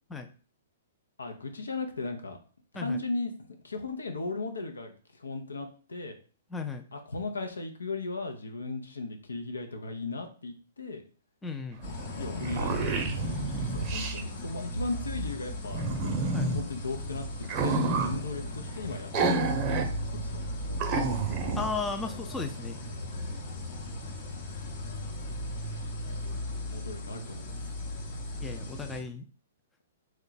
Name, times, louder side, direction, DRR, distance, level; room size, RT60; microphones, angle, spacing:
voice 1, 1.2-2.4 2.7-4.9 5.2-6.2 6.9-11.0 12.2-15.8 16.5-20.4 20.7-21.1 25.7-25.9 26.7-27.7, left 3 dB, 90° left, 5 dB, 0.7 m, -37 dB
voice 2, 6.5-6.9 11.4-11.8 16.3-16.5 21.6-22.8 28.4-29.3, left 4 dB, 10° left, 5 dB, 0.4 m, -35 dB
sound 1, 11.8-29.0, left 1 dB, 50° left, 0.8 m, -37 dB
sound 2, 11.8-11.9 12.2-14.2 15.7-16.6 17.4-18.2 19.1-19.9 20.2-20.3 20.8-21.7, right 3 dB, 30° right, 0.6 m, -29 dB
3.1 x 2.2 x 3.9 m, 0.39 s
hypercardioid pair, 130°, 0 cm